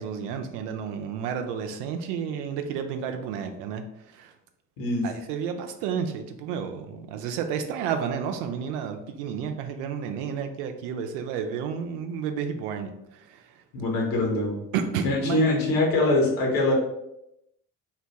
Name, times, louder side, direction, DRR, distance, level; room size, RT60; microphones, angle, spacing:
voice 1, 0.0-3.8 4.1-4.3 5.0-13.4 14.7-15.4, right 7 dB, 70° right, 6 dB, 0.6 m, -31 dB
voice 2, 13.7-14.6 15.0-16.7, left 2 dB, 65° left, -2 dB, 1.2 m, -23 dB
3.9 x 2.2 x 2.8 m, 0.83 s
figure-of-eight pair, 45°, 49 cm